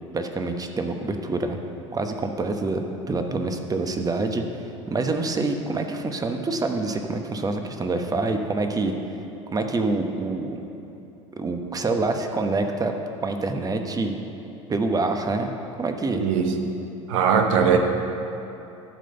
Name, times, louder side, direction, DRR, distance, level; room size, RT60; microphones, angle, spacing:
voice 1, 0.1-1.6 1.9-2.8 3.1-4.4 4.9-8.9 9.5-10.6 11.4-12.9 13.2-14.2 14.7-15.5 15.8-16.2, right 3 dB, 20° right, 5 dB, 1.1 m, -26 dB
voice 2, 16.2-16.5 17.1-17.8, right 7 dB, 75° right, 4 dB, 1.2 m, -19 dB
12.0 x 5.1 x 7.9 m, 2.9 s
hypercardioid pair, 80°, 17 cm